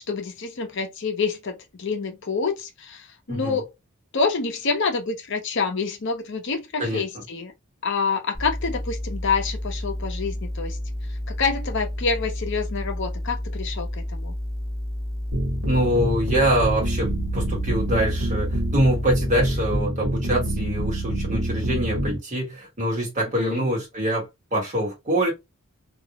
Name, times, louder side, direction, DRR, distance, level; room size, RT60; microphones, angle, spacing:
voice 1, 0.1-3.7 4.1-7.5 7.8-10.8 11.4-14.3 23.4-23.7, left 4 dB, 55° left, 0.6 m, -27 dB
voice 2, 3.3-3.6 6.8-7.0 15.7-25.3, right 1 dB, 35° right, 1.1 m, -25 dB
sound 1, 8.3-19.8, left 1 dB, ahead, 0.6 m, -31 dB
sound 2, 15.3-22.2, right 1 dB, 85° right, 1.0 m, -26 dB
2.4 x 2.0 x 2.8 m
head